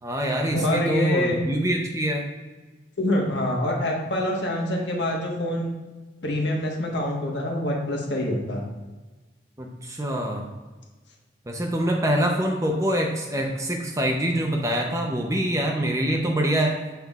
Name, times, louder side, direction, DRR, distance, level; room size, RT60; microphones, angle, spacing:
voice 1, 0.0-2.3 9.6-10.5 11.5-16.7, right 1 dB, 15° right, 1 dB, 0.6 m, -25 dB
voice 2, 0.5-1.4 3.0-5.7 6.2-8.6, left 1 dB, 75° left, -1 dB, 1.3 m, -25 dB
7.2 x 5.8 x 2.4 m, 1.2 s
head